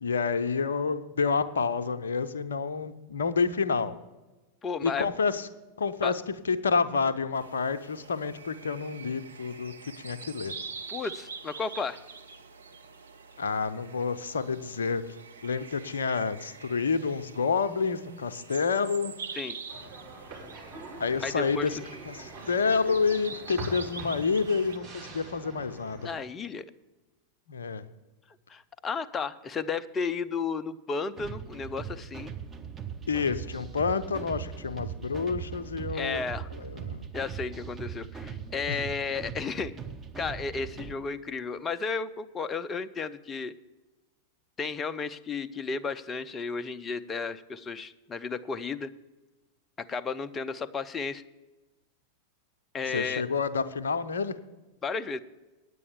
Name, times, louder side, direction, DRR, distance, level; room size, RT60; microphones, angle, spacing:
voice 1, 0.0-3.9 4.8-5.5 5.8-10.5 13.4-15.0 15.4-19.1 21.0-21.8 22.1-26.0 27.5-27.8 33.1-36.2 36.6-37.1 38.7-38.8 52.9-54.3, left 5 dB, 70° left, 10 dB, 0.6 m, -29 dB
voice 2, 4.6-5.1 6.0-6.1 10.9-12.0 19.3-19.6 21.2-21.7 26.0-26.7 28.5-32.3 35.9-36.5 37.1-39.7 40.2-43.5 44.6-48.9 49.8-51.2 52.7-53.2 54.8-55.2, left 5 dB, 20° left, 14 dB, 0.5 m, -33 dB
sound 1, 7.3-24.8, right 5 dB, 70° right, 0.7 m, -45 dB
sound 2, 19.7-26.1, right 2 dB, 45° right, 3.9 m, -43 dB
sound 3, 31.2-40.9, right 7 dB, 20° right, 0.9 m, -40 dB
9.6 x 8.4 x 7.0 m, 1.1 s
figure-of-eight pair, 90°, 0 cm